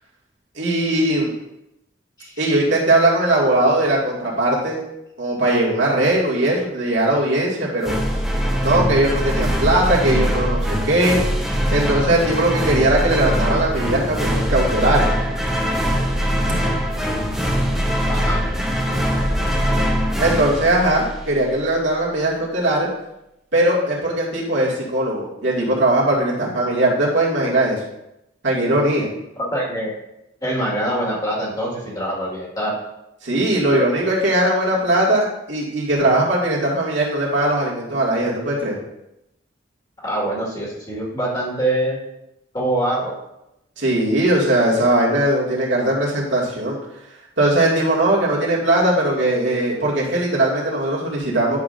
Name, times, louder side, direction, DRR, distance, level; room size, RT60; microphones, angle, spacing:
voice 1, 0.6-1.3 2.4-4.8 5.2-8.0 8.6-11.2 11.7-15.1 20.2-22.9 23.5-27.8 28.4-29.1 33.2-38.8 43.8-46.8 47.4-51.6, right 1 dB, 75° right, -5 dB, 2.2 m, -19 dB
voice 2, 2.2-2.5 18.0-18.4 29.3-29.9 30.4-32.8 40.0-42.0 42.5-43.1, right 1 dB, 20° left, -4 dB, 1.9 m, -24 dB
sound 1, 7.8-21.5, equal, ahead, 0.8 m, -22 dB
10.5 x 6.0 x 2.6 m, 0.88 s
head